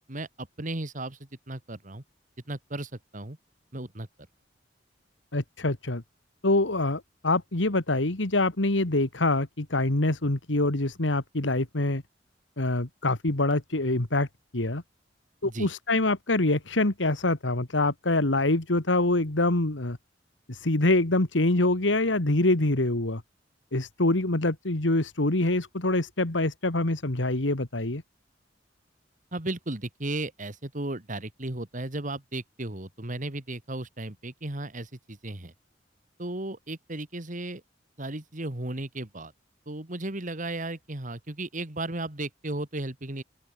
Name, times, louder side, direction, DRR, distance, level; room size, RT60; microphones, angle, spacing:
voice 1, 0.1-2.0 2.5-3.4 3.7-4.1 15.4-15.7 29.3-35.5 36.2-37.6 38.0-39.3 39.7-43.2, right 2 dB, 45° right, 2.2 m, -35 dB
voice 2, 5.3-6.0 6.4-12.0 12.6-14.3 14.5-14.8 15.4-20.0 20.5-23.2 23.7-28.0, left 2 dB, 85° left, 2.1 m, -25 dB
open air
head